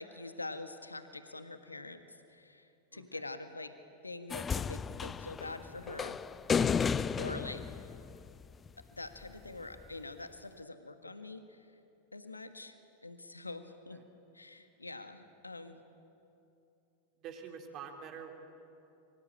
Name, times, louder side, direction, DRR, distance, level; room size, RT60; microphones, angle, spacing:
voice 1, 0.0-3.7 4.0-6.2 7.2-7.6 8.9-11.7 12.1-12.8 13.0-14.0 14.3-15.8, left 2 dB, 80° left, 9 dB, 1.6 m, -45 dB
voice 2, 2.9-3.2 13.9-14.0 17.2-18.3, right 7 dB, 35° right, 2 dB, 3.5 m, -46 dB
sound 1, 4.3-8.7 9.8-9.9, left 6 dB, 20° left, 0.6 m, -33 dB
25.0 x 24.0 x 8.8 m, 2.8 s
figure-of-eight pair, 90°, 0 cm